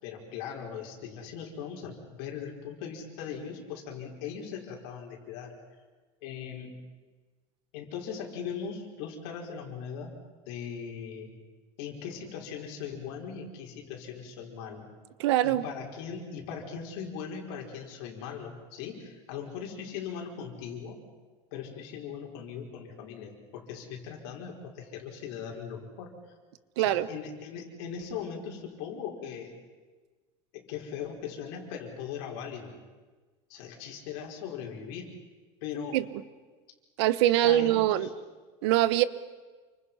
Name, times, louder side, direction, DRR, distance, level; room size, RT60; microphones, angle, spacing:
voice 1, 0.0-5.5 6.2-6.7 7.7-10.1 10.5-11.3 11.8-14.9 15.4-21.0 21.5-26.1 26.8-29.5 30.5-32.7 33.5-35.1 35.6-36.0 37.4-38.1, left 7 dB, 65° left, 0 dB, 5.4 m, -39 dB
voice 2, 15.2-15.6 26.8-27.1 35.9-36.0 37.0-38.1 38.6-39.0, right 14 dB, 80° right, 15 dB, 1.1 m, -23 dB
29.0 x 25.5 x 5.8 m, 1.3 s
cardioid pair, 175°, 14 cm